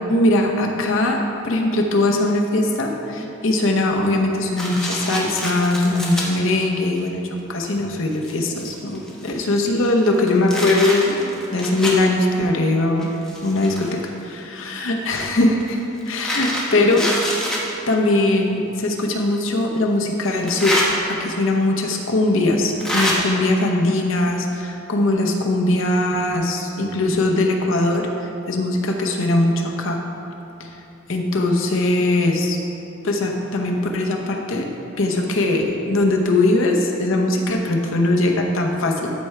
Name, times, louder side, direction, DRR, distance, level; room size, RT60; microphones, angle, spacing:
voice 1, 0.1-13.1 13.4-15.8 16.1-17.1 17.9-20.8 21.1-28.1 28.5-30.0 30.6-30.7 31.1-32.6 33.0-34.7 35.0-39.1, left 2 dB, 70° left, 1 dB, 0.8 m, -20 dB
sound 1, 4.6-6.2 7.0-7.1 7.7-7.8 8.1-9.5 10.0-12.0 13.0-14.1 15.1-17.6 18.9-19.0 20.3-20.9 21.9-22.0 22.8-23.1, left 1 dB, 5° left, 1.0 m, -26 dB
12.5 x 4.7 x 3.3 m, 3.0 s
head